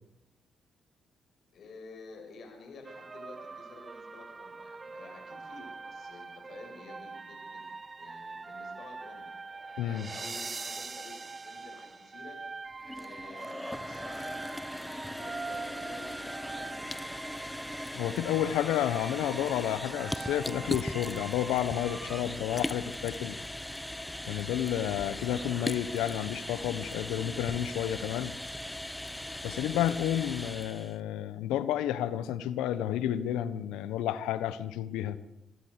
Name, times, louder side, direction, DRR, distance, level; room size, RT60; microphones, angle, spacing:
voice 1, 1.5-7.7 8.0-9.3 9.6-12.4 12.9-17.3, left 3 dB, 65° left, 3 dB, 6.9 m, -51 dB
sound 1, 2.8-22.2, right 4 dB, 35° right, 0.7 m, -43 dB
voice 2, 9.8-10.1 17.9-23.4 24.3-28.3 29.4-35.2, left 11 dB, 90° left, 14 dB, 1.2 m, -31 dB
sound 2, 12.7-31.0, left 1 dB, 10° left, 1.1 m, -39 dB
26.5 x 13.5 x 8.4 m, 0.86 s
supercardioid pair, 60°, 0 cm